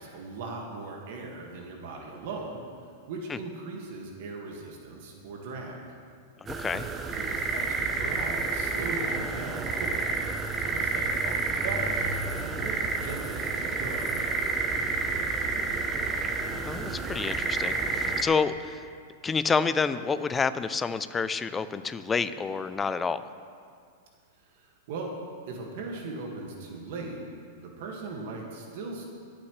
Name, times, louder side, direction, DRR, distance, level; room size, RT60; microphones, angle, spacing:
voice 1, 0.0-2.6 3.1-5.9 7.2-10.2 10.6-14.2 24.5-25.1 25.5-27.2 27.6-29.0, right 3 dB, 60° right, 0 dB, 1.9 m, -39 dB
sound 1, 6.5-18.2, right 3 dB, 20° right, 0.8 m, -30 dB
voice 2, 16.6-18.8 19.2-23.2, left 5 dB, 15° left, 13 dB, 0.4 m, -28 dB
21.5 x 8.6 x 3.3 m, 2.2 s
supercardioid pair, 150°, 0 cm